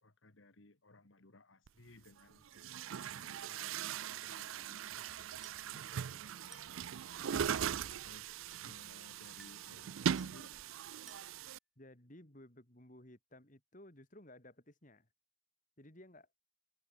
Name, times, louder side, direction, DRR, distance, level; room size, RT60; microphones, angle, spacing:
voice 1, 0.0-10.7, left 2 dB, 70° left, 2.0 m, -62 dB
Chatter / Gurgling / Tap, 1.7-1.8 2.5-11.6, right 8 dB, 80° right, 0.4 m, -40 dB
Glass, 6.5-6.9 7.5-7.9 8.5-8.8 9.4-9.7 10.2-10.5 11.1-11.5, right 1 dB, ahead, 4.5 m, -61 dB
voice 2, 11.8-15.1 15.8-16.3, left 1 dB, 40° left, 3.4 m, -57 dB
head